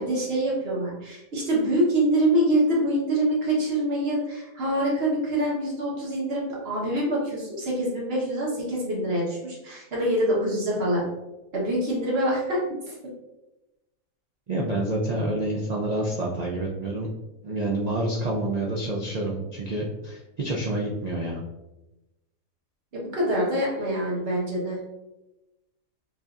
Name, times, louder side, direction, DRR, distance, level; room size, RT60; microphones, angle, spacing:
voice 1, 0.0-11.0 11.5-12.6 12.9-13.0 22.9-24.8, right 1 dB, 45° right, -5 dB, 1.4 m, -25 dB
voice 2, 14.5-17.1 17.4-21.4, right 1 dB, 90° right, -3 dB, 0.3 m, -28 dB
5.1 x 2.7 x 2.5 m, 1.0 s
omnidirectional pair, 1.5 m